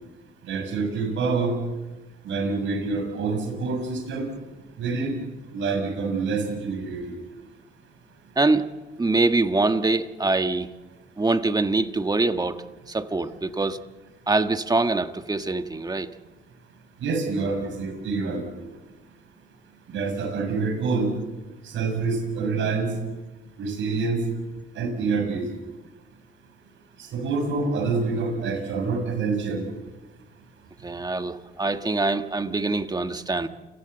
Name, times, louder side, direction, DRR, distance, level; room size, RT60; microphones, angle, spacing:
voice 1, 0.4-1.5 2.2-4.3 4.8-5.1 5.5-7.2 17.0-18.4 19.9-21.1 21.6-22.9 23.6-24.2 24.7-25.4 27.0-29.6, right 4 dB, 75° right, 5 dB, 6.7 m, -26 dB
voice 2, 8.3-8.7 9.0-10.7 11.2-13.8 14.3-16.1 30.8-33.5, right 3 dB, 20° right, 9 dB, 1.4 m, -24 dB
29.5 x 17.0 x 8.0 m, 1.2 s
cardioid pair, 90°, 20 cm